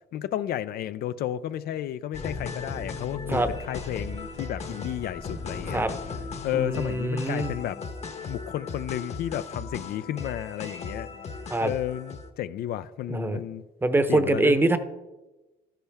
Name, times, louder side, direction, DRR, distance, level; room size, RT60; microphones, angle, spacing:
voice 1, 0.1-5.8 6.4-7.8 8.2-11.1 11.6-13.6 14.1-14.6, left 12 dB, 65° left, 0.5 m, -32 dB
sound 1, 2.1-12.3, left 4 dB, 40° left, 1.1 m, -37 dB
voice 2, 6.5-7.5 11.5-11.7 13.1-13.4 13.8-14.8, right 2 dB, 15° right, 0.8 m, -24 dB
12.5 x 10.0 x 3.5 m
cardioid pair, 110°, 17 cm